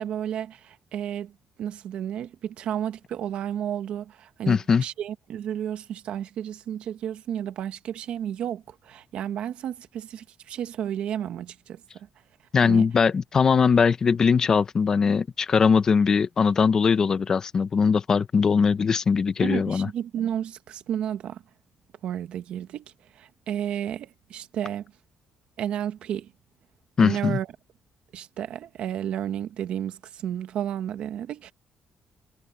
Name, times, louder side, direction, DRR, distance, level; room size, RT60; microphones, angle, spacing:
voice 1, 0.0-1.3 1.6-12.1 12.6-12.9 19.4-21.4 22.0-22.8 23.1-24.9 25.6-26.3 27.0-27.5 28.1-31.5, right 10 dB, 65° right, 1.4 m, -32 dB
voice 2, 4.5-4.8 12.5-19.9 27.0-27.4, left 5 dB, 30° left, 0.8 m, -21 dB
cardioid pair, 170°, 2 cm